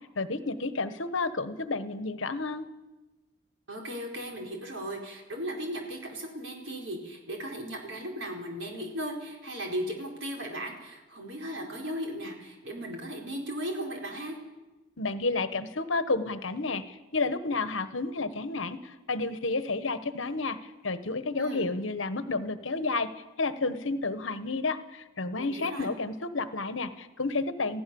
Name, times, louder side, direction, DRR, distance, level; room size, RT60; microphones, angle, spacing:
voice 1, 0.1-2.7 15.0-20.6 20.8-23.1 23.4-27.8, left 3 dB, 75° left, 11 dB, 1.3 m, -31 dB
voice 2, 3.7-14.4 21.4-21.7 25.4-25.9, equal, 70° right, 1 dB, 4.7 m, -36 dB
27.5 x 15.5 x 7.1 m, 1.1 s
head